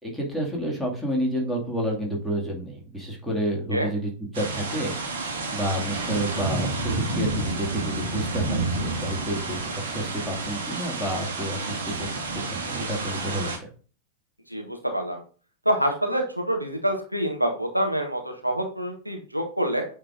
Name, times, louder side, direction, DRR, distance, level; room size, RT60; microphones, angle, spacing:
voice 1, 0.0-12.1 12.3-13.7, equal, 5° right, -2 dB, 2.5 m, -30 dB
sound 1, 4.3-13.6, right 3 dB, 60° right, 1.9 m, -30 dB
voice 2, 14.5-15.2 15.6-19.9, equal, 90° right, 3 dB, 1.3 m, -26 dB
8.5 x 3.7 x 3.8 m, 0.38 s
figure-of-eight pair, 90°, 0 cm